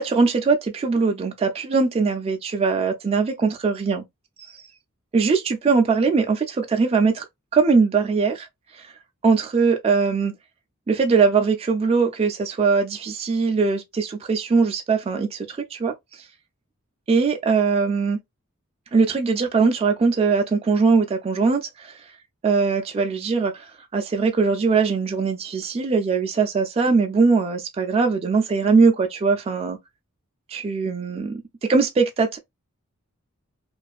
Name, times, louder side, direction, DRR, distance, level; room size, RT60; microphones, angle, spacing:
voice 1, 0.0-4.0 5.1-7.3 7.5-8.5 8.7-8.9 9.2-10.3 10.9-16.3 17.1-18.2 18.9-22.0 22.4-29.8 30.5-31.3 31.7-32.4, right 4 dB, 30° right, 0.3 m, -21 dB
2.4 x 2.3 x 2.4 m
head